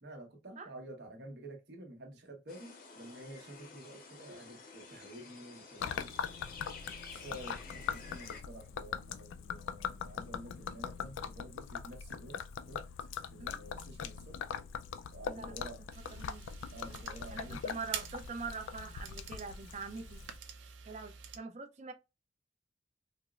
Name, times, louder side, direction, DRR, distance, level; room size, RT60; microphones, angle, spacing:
voice 1, 0.0-6.1 7.1-12.8 13.3-14.4 15.1-15.8 16.7-17.6, right 1 dB, 60° right, 0.9 m, -50 dB
sound 1, 2.5-8.4, left 4 dB, 50° left, 0.6 m, -51 dB
Gurgling / Liquid, 5.8-20.4, left 7 dB, 90° left, 0.3 m, -42 dB
voice 2, 7.7-8.2 13.4-13.7 14.3-14.5 15.3-15.5 16.1-16.5 17.3-20.2 20.9-21.9, right 4 dB, 40° right, 0.5 m, -44 dB
sound 2, 15.9-21.4, right 7 dB, 90° right, 0.5 m, -47 dB
4.3 x 2.0 x 2.3 m
head